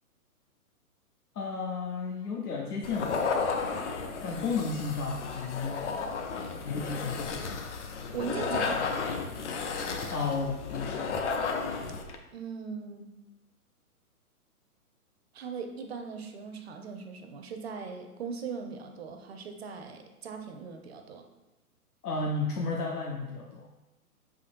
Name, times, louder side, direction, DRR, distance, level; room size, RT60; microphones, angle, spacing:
voice 1, 1.4-3.2 4.2-6.1 6.6-7.5 10.1-11.1 22.0-23.7, left 4 dB, 80° left, -1 dB, 0.8 m, -33 dB
sound 1, 2.8-12.2, left 5 dB, 50° left, 0.6 m, -33 dB
voice 2, 8.1-8.9 12.3-13.1 15.3-21.2, right 5 dB, 45° right, 5 dB, 0.6 m, -39 dB
5.0 x 3.8 x 2.5 m, 1.0 s
hypercardioid pair, 140°, 45 cm